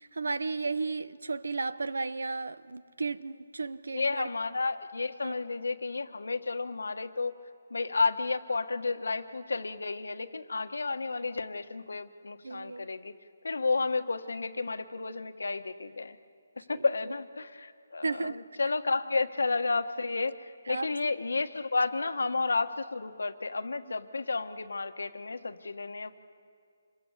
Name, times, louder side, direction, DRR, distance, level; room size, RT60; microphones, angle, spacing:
voice 1, 0.0-4.3 5.2-5.3 12.4-12.9 16.7-16.8 18.0-18.4 20.7-20.9, right 3 dB, 85° right, 0.9 m, -34 dB
voice 2, 3.9-7.4 7.7-13.1 13.4-16.2 16.6-26.2, left 3 dB, 90° left, 1.4 m, -32 dB
26.5 x 22.5 x 8.3 m
hypercardioid pair, 170°, 0 cm